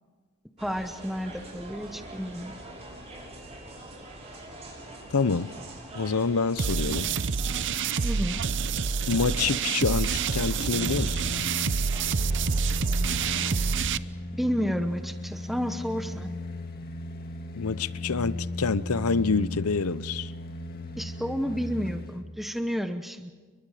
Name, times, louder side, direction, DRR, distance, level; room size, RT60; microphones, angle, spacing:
voice 1, 0.6-2.5 8.0-8.4 14.3-16.3 21.0-23.3, equal, ahead, 1.0 m, -31 dB
sound 1, 0.6-13.8, right 1 dB, 30° right, 6.1 m, -44 dB
voice 2, 5.1-5.5 5.9-7.1 9.1-11.2 17.5-20.3, left 4 dB, 85° left, 0.8 m, -27 dB
sound 2, 6.6-14.0, right 5 dB, 55° right, 0.7 m, -27 dB
sound 3, 10.6-22.2 22.6-22.7, left 1 dB, 45° left, 1.9 m, -36 dB
29.5 x 23.5 x 5.0 m
head